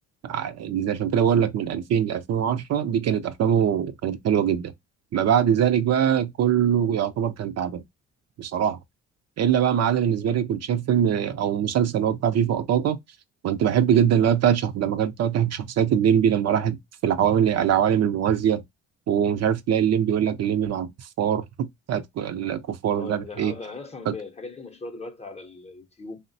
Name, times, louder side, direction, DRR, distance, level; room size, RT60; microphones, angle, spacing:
voice 1, 0.2-4.7 5.1-7.8 8.4-8.8 9.4-13.0 13.4-16.8 17.0-18.6 19.1-20.9 21.2-23.5 24.1-24.2, right 9 dB, 60° right, 0.5 m, -22 dB
voice 2, 22.9-26.2, left 3 dB, 20° left, 0.7 m, -39 dB
3.2 x 2.1 x 2.6 m
cardioid pair, 90°, 30 cm